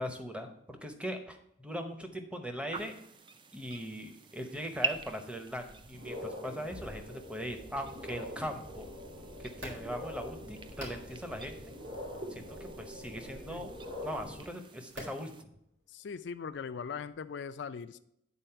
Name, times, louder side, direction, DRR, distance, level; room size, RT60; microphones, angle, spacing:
voice 1, 0.0-2.9 3.5-8.9 9.4-11.7 12.3-13.7 14.0-15.5, equal, 5° right, 5 dB, 0.8 m, -40 dB
sound 1, 2.7-15.4, right 3 dB, 25° right, 0.4 m, -45 dB
sound 2, 5.7-14.4, left 1 dB, 60° right, 2.4 m, -44 dB
sound 3, 9.4-17.3, equal, 85° right, 3.0 m, -52 dB
voice 2, 15.9-18.0, left 6 dB, 70° left, 11 dB, 0.4 m, -40 dB
9.1 x 4.1 x 5.7 m, 0.77 s
head